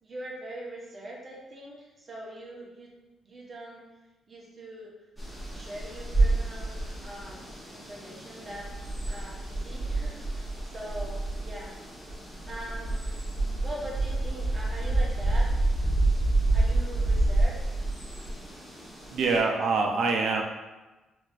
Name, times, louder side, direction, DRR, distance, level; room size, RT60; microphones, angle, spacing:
voice 1, 0.0-2.9 3.2-3.8 4.3-4.9 5.5-8.7 9.1-11.7 12.4-13.2 13.6-15.5 16.5-17.6, right 1 dB, 30° right, -4 dB, 0.8 m, -42 dB
sound 1, 5.2-19.4, right 2 dB, ahead, 0.9 m, -28 dB
voice 2, 19.1-20.4, right 4 dB, 70° right, 2 dB, 0.5 m, -25 dB
4.0 x 2.5 x 2.3 m, 1.1 s
cardioid pair, 90°, 0 cm